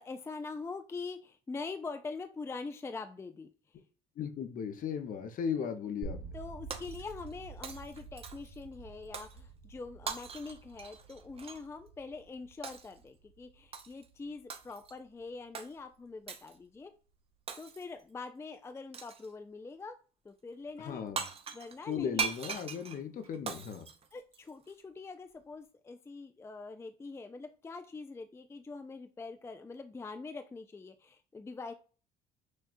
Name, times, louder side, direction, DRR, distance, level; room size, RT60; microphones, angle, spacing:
voice 1, 0.0-3.5 6.3-16.9 17.6-20.0 20.2-21.1 21.5-22.3 24.1-31.7, left 4 dB, 15° left, 8 dB, 0.4 m, -44 dB
voice 2, 4.2-6.3 20.8-21.2 21.9-23.9, left 7 dB, 55° left, 8 dB, 0.8 m, -36 dB
sound 1, 6.0-16.0, right 4 dB, 65° right, 1.3 m, -50 dB
Shatter, 6.7-7.4 7.6-8.6 9.1-9.4 10.1-11.6 12.6-13.0 13.7-14.1 14.5-15.0 15.5-15.7 16.3-16.6 17.5-18.0 18.9-19.3 20.9-21.0 21.2-24.7, right 6 dB, 35° right, 0.7 m, -40 dB
6.4 x 2.3 x 2.4 m, 0.38 s
cardioid pair, 110°, 17 cm